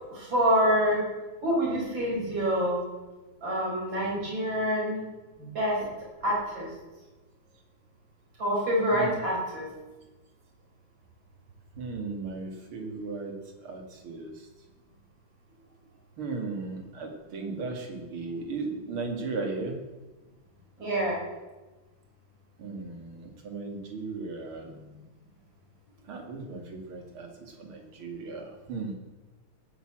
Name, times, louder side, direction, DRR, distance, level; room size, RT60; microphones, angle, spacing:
voice 1, 0.1-1.1 1.4-2.8 3.4-5.0 5.4-5.8 6.2-6.7 8.4-9.7 20.8-21.2, equal, 60° right, -4 dB, 6.2 m, -26 dB
voice 2, 11.8-13.3 13.6-14.5 16.2-19.8 22.6-25.0 26.1-28.9, right 3 dB, 75° right, 4 dB, 3.0 m, -36 dB
17.5 x 9.5 x 7.6 m, 1.2 s
omnidirectional pair, 2.3 m